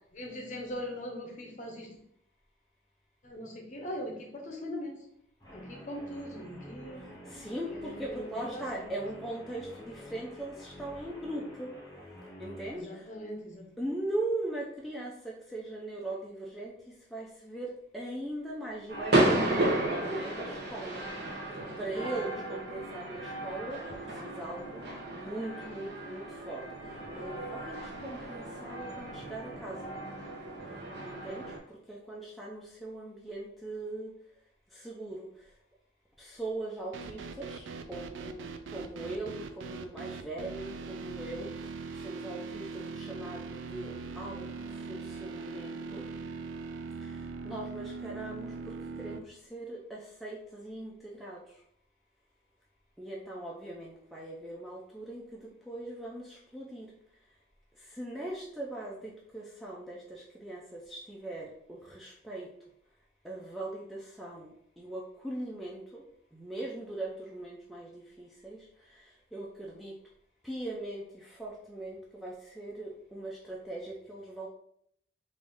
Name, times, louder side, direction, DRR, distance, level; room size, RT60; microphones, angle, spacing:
voice 1, 0.1-1.9 3.2-4.9 5.5-7.1 7.6-8.8 12.7-13.8, equal, 40° left, 0 dB, 0.8 m, -40 dB
Guitar, 5.4-12.8, left 1 dB, 20° left, 1.0 m, -48 dB
voice 2, 7.3-11.7 12.4-13.0 13.8-16.7 17.1-21.0 21.8-24.7 25.2-26.6 27.2-29.9 31.0-31.4 31.9-34.1 34.7-35.2 36.2-41.5 42.0-46.0 47.0-47.1 47.4-48.5 49.0-51.4 53.0-55.2 55.7-56.9 57.9-62.5 63.2-66.0 66.3-68.6 69.3-69.9 70.4-74.5, right 1 dB, ahead, -4 dB, 0.3 m, -40 dB
sound 1, 18.9-31.6, right 1 dB, 55° right, 0.8 m, -33 dB
sound 2, 36.9-49.2, right 4 dB, 85° right, 0.3 m, -41 dB
3.4 x 2.5 x 3.4 m, 0.70 s
head